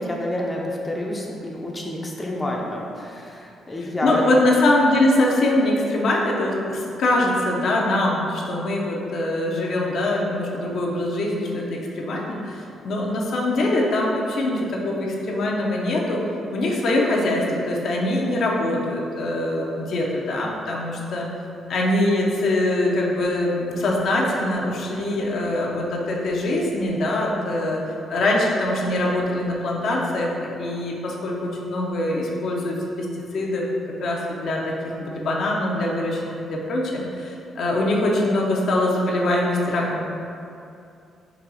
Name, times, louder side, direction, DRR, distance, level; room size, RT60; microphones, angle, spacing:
voice 1, 0.0-4.2, left 1 dB, 20° left, -2 dB, 0.5 m, -28 dB
voice 2, 4.0-16.2 16.5-21.3 21.7-27.8 28.1-30.3 30.6-33.1 33.3-33.6 34.0-40.0, left 1 dB, 65° left, -2 dB, 0.6 m, -23 dB
4.0 x 2.3 x 4.0 m, 2.6 s
cardioid pair, 90°, 0 cm